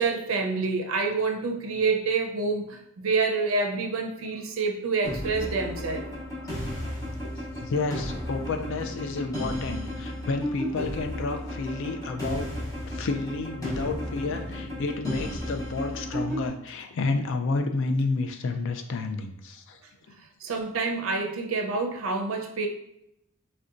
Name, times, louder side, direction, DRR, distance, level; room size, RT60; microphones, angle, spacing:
voice 1, 0.0-6.1 20.4-22.7, right 4 dB, 65° right, 3 dB, 0.5 m, -27 dB
sound 1, 5.0-16.5, equal, 15° left, 0.7 m, -34 dB
voice 2, 7.2-12.5 12.8-19.8, left 3 dB, 55° left, 6 dB, 0.3 m, -30 dB
3.8 x 2.2 x 2.4 m, 0.80 s
head